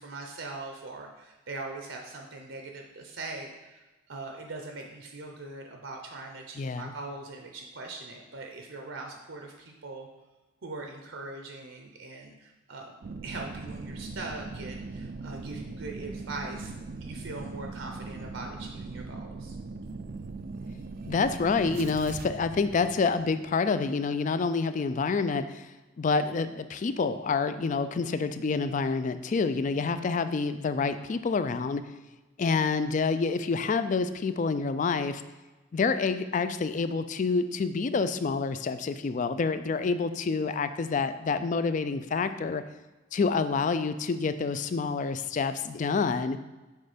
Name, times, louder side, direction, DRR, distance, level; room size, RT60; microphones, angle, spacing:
voice 1, 0.0-10.1 10.6-13.0 13.2-16.7 17.0-19.6, right 3 dB, 75° right, 2 dB, 0.8 m, -41 dB
voice 2, 6.6-6.9 21.1-25.7 26.0-31.8 32.4-35.2 35.7-42.6 43.1-46.4, left 4 dB, 40° left, 11 dB, 0.3 m, -28 dB
sound 1, 13.0-23.5 23.9-24.0, right 3 dB, 45° right, 0.4 m, -40 dB
6.5 x 4.1 x 5.0 m, 1.1 s
head